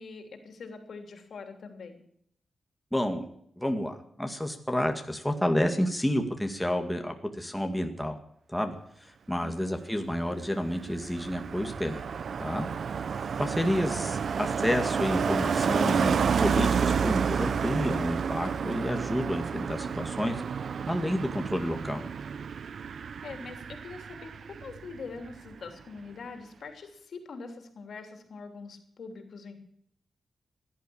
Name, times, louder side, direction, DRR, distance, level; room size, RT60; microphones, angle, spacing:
voice 1, 0.0-2.0 9.4-9.7 22.9-29.6, left 4 dB, 70° left, 5 dB, 3.2 m, -44 dB
voice 2, 2.9-3.3 3.6-8.2 8.5-12.0 12.4-12.7 13.4-20.4 20.9-22.0, equal, 5° left, 4 dB, 1.9 m, -30 dB
Car passing by, 10.2-25.0 25.2-25.6, right 6 dB, 70° right, 0.6 m, -30 dB
16.5 x 11.5 x 7.1 m, 0.69 s
wide cardioid pair, 110°, 0 cm